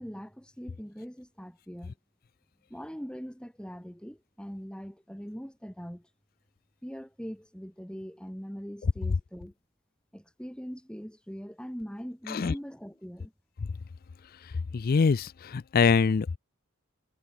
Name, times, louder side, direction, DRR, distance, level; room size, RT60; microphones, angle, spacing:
voice 1, 0.0-1.9 2.7-6.1 6.8-9.5 10.1-13.3, equal, 5° left, 5.3 m, -41 dB
voice 2, 14.7-16.4, left 5 dB, 45° left, 0.4 m, -24 dB
head